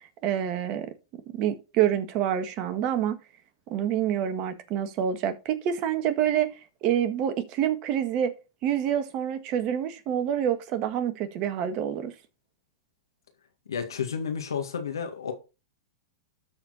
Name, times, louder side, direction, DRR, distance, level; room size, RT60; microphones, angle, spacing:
voice 1, 0.2-0.9 1.3-3.2 3.7-6.5 6.8-8.3 8.6-12.1, right 10 dB, 45° right, 1.6 m, -27 dB
voice 2, 13.7-15.3, left 7 dB, 85° left, 2.0 m, -31 dB
12.5 x 4.5 x 4.3 m
hypercardioid pair, 110°, 2 cm